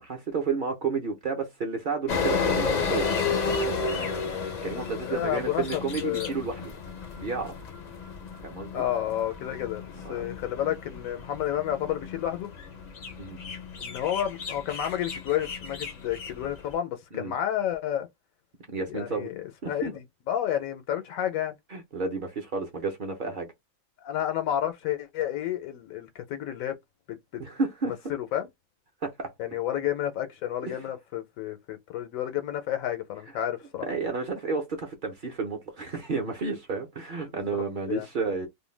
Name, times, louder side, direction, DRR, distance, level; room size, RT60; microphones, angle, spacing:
voice 1, 0.0-3.1 4.6-6.7 7.2-7.5 8.4-8.8 10.0-10.3 13.2-13.4 17.1-17.3 18.7-19.3 19.6-19.9 21.7-23.5 27.4-27.9 29.0-29.3 30.6-30.8 33.8-38.5, right 4 dB, 50° right, 0.7 m, -31 dB
sound 1, 2.1-16.7, left 5 dB, 50° left, 0.5 m, -33 dB
voice 2, 5.1-6.3 8.7-12.5 13.8-18.1 18.9-21.5 24.0-26.8 27.3-27.4 27.9-28.5 29.4-33.8 37.5-38.1, left 11 dB, 80° left, 1.0 m, -31 dB
2.5 x 2.1 x 3.1 m
omnidirectional pair, 1.4 m